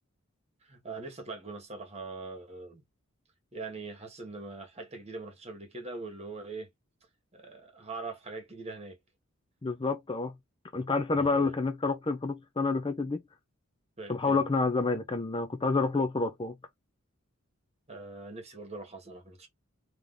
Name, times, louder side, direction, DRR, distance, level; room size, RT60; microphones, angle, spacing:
voice 1, 0.6-2.8 3.5-6.7 7.3-9.0 11.2-11.5 14.0-14.4 17.9-19.5, right 3 dB, 30° right, 1.7 m, -42 dB
voice 2, 9.6-10.3 10.7-13.2 14.1-16.5, left 3 dB, 25° left, 0.5 m, -28 dB
3.4 x 3.1 x 3.8 m
head